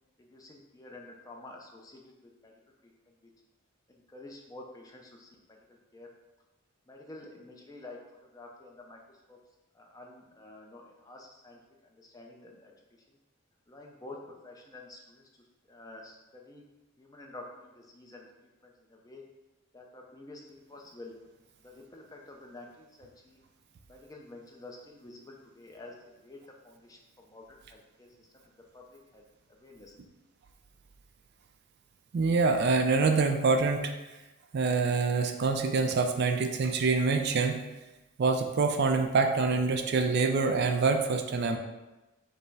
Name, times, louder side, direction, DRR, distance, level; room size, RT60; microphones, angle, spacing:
voice 1, 0.2-3.3 3.9-6.1 6.9-8.0 8.3-9.4 9.7-12.7 13.1-13.2 13.7-15.3 15.7-16.6 17.0-18.3 18.6-19.2 19.7-21.2 21.6-23.4 23.9-25.9 26.2-30.0, left 2 dB, 15° left, 0 dB, 0.5 m, -50 dB
voice 2, 32.1-33.9 34.5-37.6 38.2-41.6, right 4 dB, 50° right, 5 dB, 0.3 m, -26 dB
5.3 x 2.0 x 4.7 m, 1.1 s
head